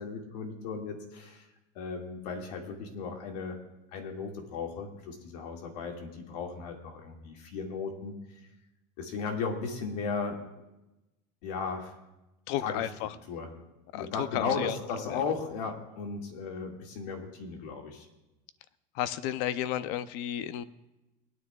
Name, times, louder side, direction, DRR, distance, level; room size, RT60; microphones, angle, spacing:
voice 1, 0.0-1.5 1.8-3.6 3.9-8.1 9.0-10.4 11.4-12.0 12.6-12.8 13.3-13.5 13.9-18.1, left 5 dB, 80° left, 2 dB, 2.0 m, -36 dB
voice 2, 12.5-13.1 13.9-14.8 15.0-15.2 18.9-20.6, left 12 dB, 60° left, 15 dB, 0.6 m, -33 dB
20.5 x 9.6 x 2.3 m, 0.99 s
supercardioid pair, 145°, 20 cm